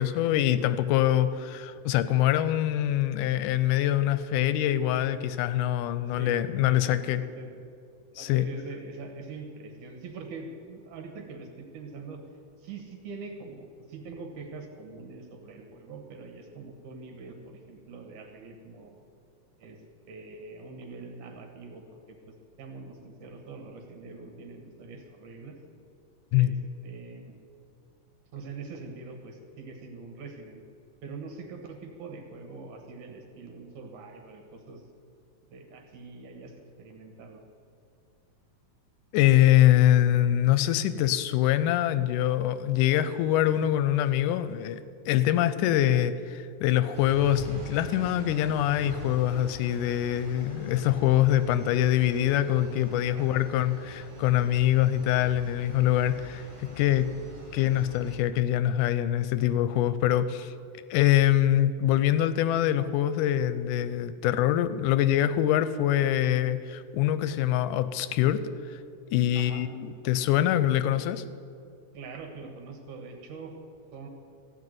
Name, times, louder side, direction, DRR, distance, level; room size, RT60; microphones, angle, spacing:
voice 1, 0.0-7.2 8.2-8.4 26.3-26.6 39.1-44.8 45.1-57.1 57.5-60.5 60.9-68.4 69.1-71.2, left 12 dB, 85° left, 13 dB, 2.2 m, -24 dB
voice 2, 6.1-7.6 8.1-12.2 12.6-19.0 19.6-19.8 20.1-22.2 22.6-25.6 26.4-26.6 26.8-27.3 28.3-30.6 31.0-34.8 35.5-37.4 53.1-53.4 69.3-69.7 71.9-73.5 73.9-74.1, right 4 dB, 75° right, 3 dB, 2.9 m, -43 dB
sound 1, 46.9-58.2, equal, 25° right, 1.3 m, -44 dB
15.0 x 5.9 x 9.3 m, 2.4 s
omnidirectional pair, 3.6 m